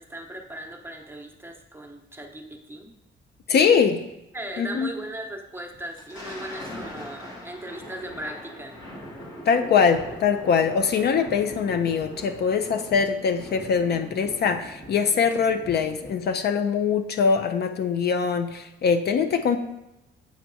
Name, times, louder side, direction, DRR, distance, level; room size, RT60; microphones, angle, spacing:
voice 1, 0.0-2.9 3.5-3.9 4.3-8.8 15.3-15.4, right 1 dB, 10° right, 3 dB, 0.8 m, -38 dB
voice 2, 3.5-4.0 4.6-4.9 9.5-19.6, left 6 dB, 55° left, 8 dB, 0.4 m, -22 dB
Thunder, 5.7-16.5, equal, 90° left, 1.7 m, -41 dB
8.5 x 4.4 x 2.7 m, 0.90 s
cardioid pair, 90°, 20 cm